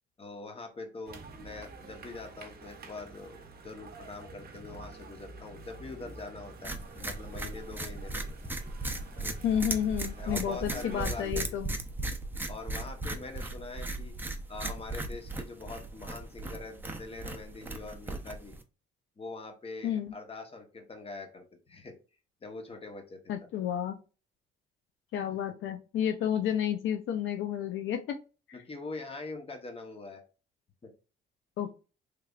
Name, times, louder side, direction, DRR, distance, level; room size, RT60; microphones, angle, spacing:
voice 1, 0.2-8.2 9.1-9.4 10.2-11.6 12.5-14.1 14.5-18.5 19.2-21.9 22.4-23.2 28.5-30.2 30.8-30.9, left 3 dB, 30° left, 4 dB, 1.1 m, -43 dB
sound 1, 1.1-11.3, right 3 dB, 50° right, 0.9 m, -49 dB
sound 2, 6.6-18.6, right 2 dB, 10° right, 0.6 m, -37 dB
voice 2, 9.4-11.7 19.8-20.1 23.3-24.0 25.1-28.2 28.5-28.6 31.6-31.7, left 9 dB, 75° left, 7 dB, 0.5 m, -31 dB
3.4 x 3.3 x 2.4 m, 0.33 s
cardioid pair, 90°, 20 cm